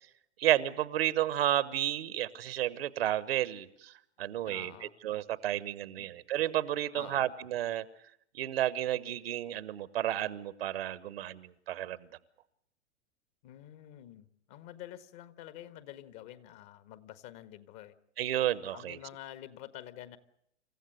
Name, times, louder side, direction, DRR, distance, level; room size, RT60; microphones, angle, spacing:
voice 1, 0.4-3.9 4.2-7.8 8.3-12.1 18.2-19.0, right 12 dB, 55° right, 17 dB, 1.2 m, -32 dB
voice 2, 4.4-4.9 6.0-6.2 6.9-7.3 13.4-17.9 18.7-20.2, left 12 dB, 40° left, 12 dB, 1.6 m, -48 dB
27.5 x 15.0 x 7.9 m, 0.74 s
figure-of-eight pair, 105°, 35 cm